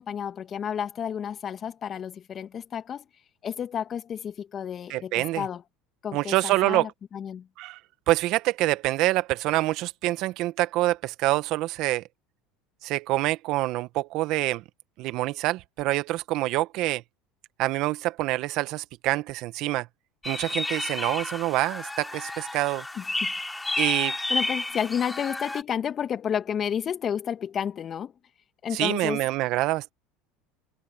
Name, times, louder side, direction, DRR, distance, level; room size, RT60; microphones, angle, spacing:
voice 1, 0.0-3.0 3.4-5.6 6.0-7.5 23.0-23.3 24.3-28.1 28.6-29.2, left 8 dB, 40° left, 2.4 m, -31 dB
voice 2, 4.9-5.5 6.1-6.9 7.6-7.8 8.1-12.0 12.8-14.6 15.0-17.0 17.6-19.9 20.2-22.8 23.8-24.1 28.7-29.9, right 17 dB, 60° right, 1.4 m, -26 dB
sound 1, 20.2-25.6, left 2 dB, 10° left, 5.4 m, -31 dB
supercardioid pair, 100°, 0 cm